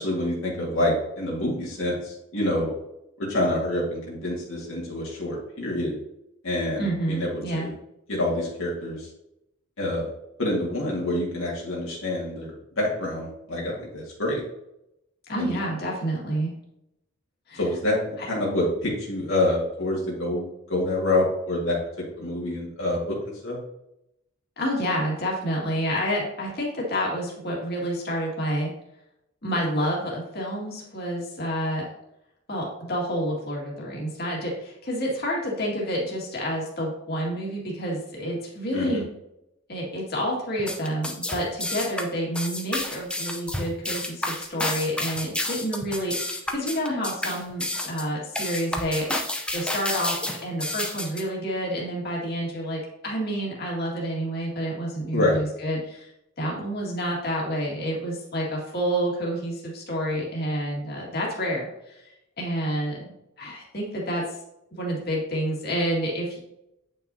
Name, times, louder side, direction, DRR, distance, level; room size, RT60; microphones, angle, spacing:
voice 1, 0.0-2.7 3.2-6.0 6.4-7.7 8.1-9.1 9.8-10.1 10.4-14.4 15.4-15.6 17.6-21.8 22.2-23.2 23.4-23.6 38.7-39.0 55.1-55.4, left 1 dB, 70° left, -4 dB, 1.9 m, -27 dB
voice 2, 6.8-7.7 15.3-16.5 17.5-17.6 18.2-18.3 24.6-28.7 29.4-31.8 32.5-39.1 39.7-56.1 56.4-62.0 62.4-63.1 63.4-64.4 64.7-66.4, equal, 45° left, -4 dB, 2.0 m, -29 dB
sound 1, 40.6-51.2, left 1 dB, 5° left, 0.5 m, -30 dB
8.8 x 5.6 x 2.7 m, 0.84 s
head